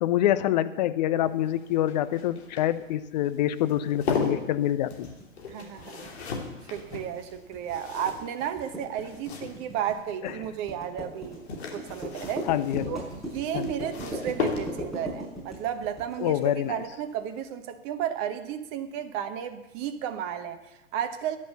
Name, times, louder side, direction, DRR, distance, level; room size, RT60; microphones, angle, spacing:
voice 1, 0.0-5.1 10.2-10.3 12.4-13.0 13.5-13.7 16.2-16.8, left 12 dB, 35° left, 13 dB, 0.7 m, -26 dB
sound 1, 1.2-10.0 11.2-15.1 16.7-17.0 17.3-17.4, left 5 dB, 55° left, 3.1 m, -36 dB
sound 2, 4.9-16.5, right 1 dB, ahead, 5.8 m, -39 dB
voice 2, 5.5-6.4 6.7-11.4 11.7-12.5 12.9-21.4, right 9 dB, 25° right, 9 dB, 1.0 m, -33 dB
13.0 x 10.0 x 6.8 m, 1.0 s
figure-of-eight pair, 115°, 38 cm